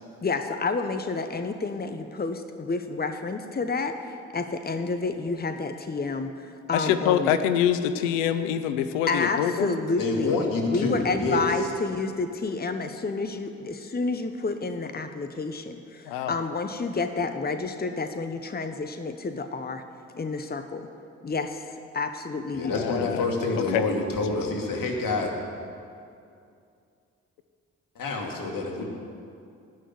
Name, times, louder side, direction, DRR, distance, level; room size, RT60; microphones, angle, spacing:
voice 1, 0.2-7.3 9.1-10.3 10.7-19.8 20.1-20.9 21.2-21.6 21.9-22.9, left 4 dB, 25° left, 8 dB, 1.1 m, -29 dB
voice 2, 6.7-9.7 16.1-16.3 22.6-23.2 23.6-23.8, left 9 dB, 80° left, 11 dB, 0.7 m, -25 dB
voice 3, 10.0-11.5 22.5-25.3 28.0-28.8, left 3 dB, 60° left, 1 dB, 2.7 m, -27 dB
18.0 x 6.4 x 9.6 m, 2.5 s
hypercardioid pair, 40°, 38 cm